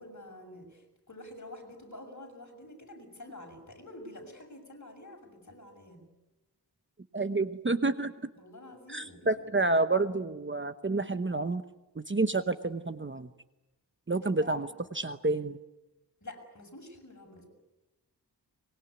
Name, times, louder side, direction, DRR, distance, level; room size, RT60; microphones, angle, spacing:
voice 1, 0.0-6.1 8.4-9.5 14.1-14.9 16.2-17.5, left 1 dB, 45° left, 3 dB, 6.9 m, -48 dB
voice 2, 7.1-8.1 8.9-11.6 12.1-13.3 14.1-15.6, right 3 dB, 30° right, 10 dB, 1.0 m, -29 dB
24.0 x 22.0 x 9.6 m, 1.0 s
wide cardioid pair, 105°, 41 cm